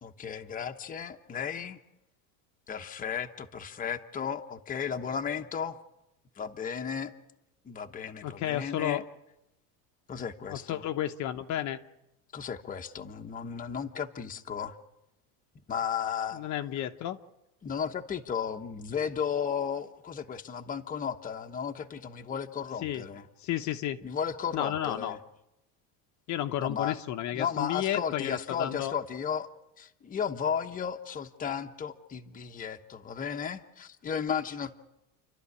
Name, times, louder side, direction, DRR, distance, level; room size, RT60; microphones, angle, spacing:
voice 1, 0.0-1.8 2.7-5.8 6.4-7.1 7.6-9.0 10.1-10.8 12.3-14.7 15.7-16.5 17.6-23.3 24.0-25.2 26.6-26.9 27.3-29.5 29.8-34.7, left 7 dB, 20° left, 5 dB, 1.1 m, -34 dB
voice 2, 8.2-9.0 10.5-11.8 16.3-17.2 22.8-23.0 23.4-24.0 24.5-25.2 26.3-28.9, left 12 dB, 45° left, 6 dB, 1.1 m, -32 dB
29.5 x 12.5 x 9.7 m, 0.91 s
cardioid pair, 145°, 40 cm